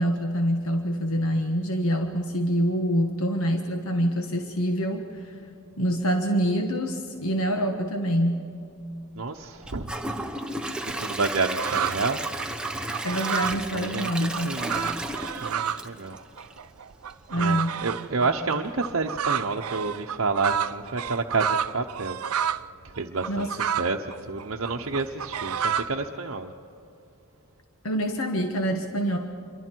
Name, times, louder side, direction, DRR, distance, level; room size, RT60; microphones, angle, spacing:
voice 1, 0.0-5.4 5.8-8.4 13.0-14.6 17.3-17.8 23.3-23.5 27.8-29.2, equal, 75° left, 4 dB, 1.4 m, -26 dB
voice 2, 9.2-9.9 10.8-12.2 13.7-14.9 15.4-16.2 17.3-22.2 22.8-26.5, right 4 dB, 65° right, 1 dB, 0.9 m, -29 dB
Gurgling / Toilet flush / Trickle dribble, 9.6-16.7 17.1-17.2 17.7-17.8, right 1 dB, 5° right, 0.9 m, -33 dB
sound 1, 11.5-12.0 12.4-15.9 16.1-22.7 22.9-26.0, right 8 dB, 90° right, 0.6 m, -30 dB
27.5 x 23.5 x 4.6 m, 2.7 s
head